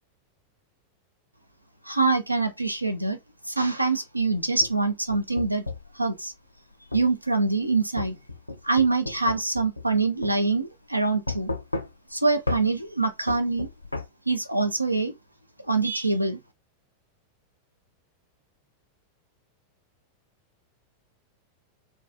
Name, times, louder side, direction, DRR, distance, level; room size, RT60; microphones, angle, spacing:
voice 1, 1.8-3.2 3.4-5.6 5.9-6.3 6.9-8.2 8.6-11.5 12.1-13.7 14.3-15.2 15.6-16.4, right 3 dB, 85° right, 0.3 m, -24 dB
sound 1, 4.3-5.9 6.9-7.1 8.0-10.0 10.2-10.4 11.3-12.1 12.5-12.7 13.3-14.1, left 3 dB, 85° left, 0.4 m, -32 dB
2.3 x 2.3 x 2.5 m
figure-of-eight pair, 90°, 0 cm